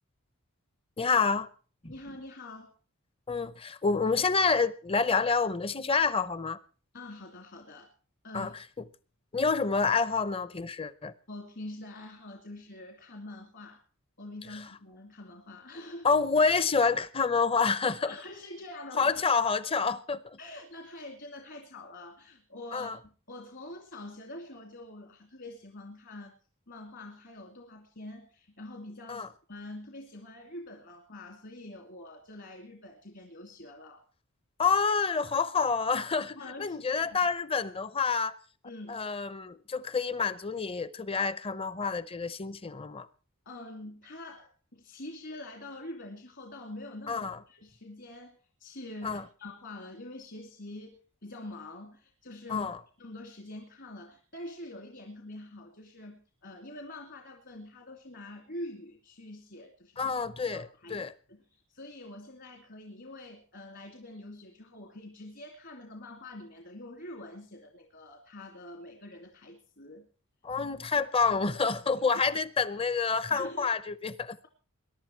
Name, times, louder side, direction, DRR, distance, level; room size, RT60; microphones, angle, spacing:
voice 1, 1.0-1.5 1.8-1.9 3.3-6.6 8.3-8.5 9.3-11.1 16.0-18.1 19.0-20.4 22.7-23.0 29.1-29.3 34.6-38.3 38.9-43.1 47.1-47.4 49.0-49.2 52.5-52.8 60.0-61.1 70.4-74.4, left 5 dB, 25° left, 0.7 m, -28 dB
voice 2, 1.9-2.7 6.9-7.9 8.2-8.5 11.3-13.8 14.2-16.1 18.1-19.2 20.4-26.4 26.7-34.0 36.4-37.3 38.6-39.0 43.4-52.7 53.0-60.1 60.5-61.0 61.3-70.1 71.9-72.0 72.3-72.4 73.3-73.7, left 1 dB, 55° left, 2.6 m, -45 dB
22.0 x 11.0 x 4.5 m
head